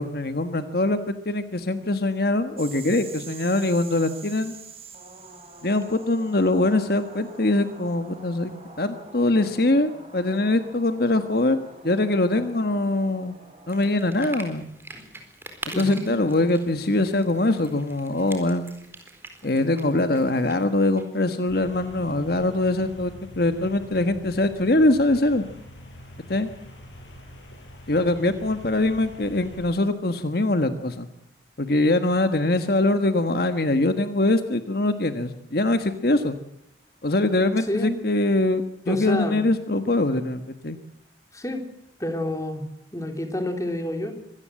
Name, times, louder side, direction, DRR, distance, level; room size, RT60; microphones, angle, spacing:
voice 1, 0.0-4.5 5.6-8.5 8.8-11.6 11.8-13.4 13.7-14.7 15.7-18.7 19.4-25.4 26.3-26.5 27.9-31.1 31.6-36.4 37.0-40.8, left 2 dB, 55° left, 9 dB, 1.4 m, -23 dB
sound 1, 2.6-13.8, right 4 dB, 30° right, 4.2 m, -45 dB
sound 2, 13.7-21.0, right 2 dB, 10° right, 4.1 m, -44 dB
voice 2, 15.7-16.0 37.7-38.0 38.9-39.4 41.3-41.6 42.0-42.6 42.9-44.1, left 1 dB, 15° left, 5 dB, 3.3 m, -28 dB
sound 3, 21.5-29.6, left 1 dB, 85° left, 7.4 m, -45 dB
25.0 x 18.0 x 7.7 m, 0.75 s
head